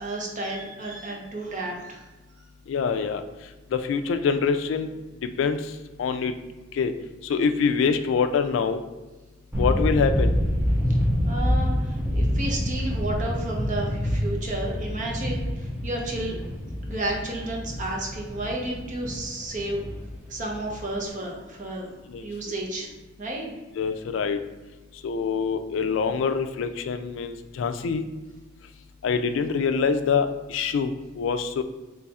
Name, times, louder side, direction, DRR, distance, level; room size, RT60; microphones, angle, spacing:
voice 1, 0.0-2.0 11.2-16.4 16.8-19.8 20.3-21.9 22.2-22.9 23.2-23.5, right 1 dB, 40° right, -1 dB, 0.8 m, -32 dB
voice 2, 2.7-3.2 3.7-4.9 5.4-5.6 6.0-6.3 6.8-6.9 7.3-8.8 9.6-10.3 22.1-22.2 23.7-24.4 25.0-28.1 29.0-30.9 31.2-31.6, left 5 dB, 70° left, 9 dB, 0.3 m, -25 dB
sound 1, 9.5-21.0, equal, 10° right, 0.6 m, -27 dB
3.1 x 2.4 x 4.0 m, 1.2 s
head